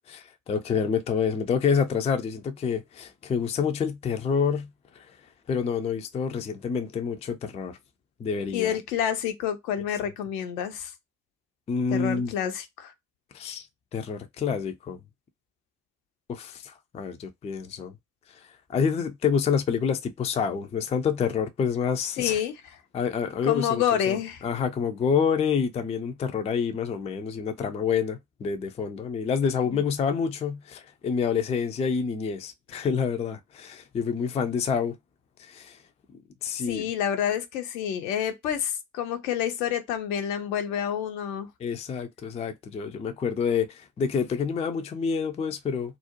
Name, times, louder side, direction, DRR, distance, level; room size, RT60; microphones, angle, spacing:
voice 1, 0.1-4.7 5.0-5.1 5.5-7.8 8.2-8.7 11.7-12.3 13.3-13.7 13.9-15.0 16.3-17.9 18.3-18.4 18.7-22.4 22.9-24.2 24.4-35.0 35.4-35.8 36.4-36.9 41.6-46.0, left 6 dB, 15° left, 0.3 m, -28 dB
voice 2, 8.5-10.9 11.9-12.9 22.2-22.5 23.4-24.4 29.7-29.8 36.6-41.5, left 9 dB, 75° left, 0.6 m, -28 dB
2.5 x 2.0 x 2.7 m
figure-of-eight pair, 40°, 50 cm